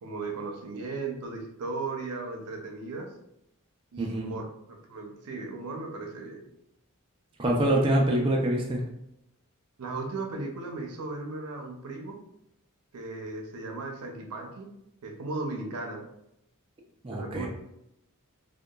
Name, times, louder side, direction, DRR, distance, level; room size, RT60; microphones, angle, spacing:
voice 1, 0.0-3.1 3.9-6.4 9.8-12.2 12.9-14.7 15.0-16.0 17.1-17.5, right 3 dB, 85° right, 2 dB, 0.5 m, -36 dB
voice 2, 4.0-4.3 7.4-8.8 17.0-17.5, right 1 dB, 25° right, -1 dB, 0.3 m, -25 dB
2.8 x 2.2 x 2.2 m, 0.81 s
head